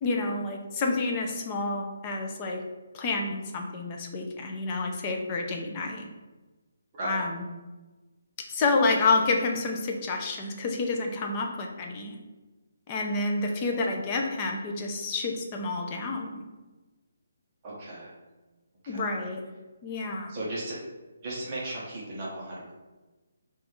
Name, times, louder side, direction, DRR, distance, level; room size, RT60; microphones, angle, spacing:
voice 1, 0.0-2.6 2.9-6.1 7.0-7.4 8.5-12.2 12.9-16.4 18.9-19.4 19.8-20.3, left 3 dB, 15° left, 2 dB, 0.4 m, -29 dB
voice 2, 6.9-7.2 13.4-13.6 17.6-18.2 18.8-19.1 20.3-20.8 21.2-22.7, right 1 dB, 20° right, -6 dB, 0.8 m, -36 dB
5.0 x 2.3 x 3.1 m, 1.2 s
hypercardioid pair, 175°, 0 cm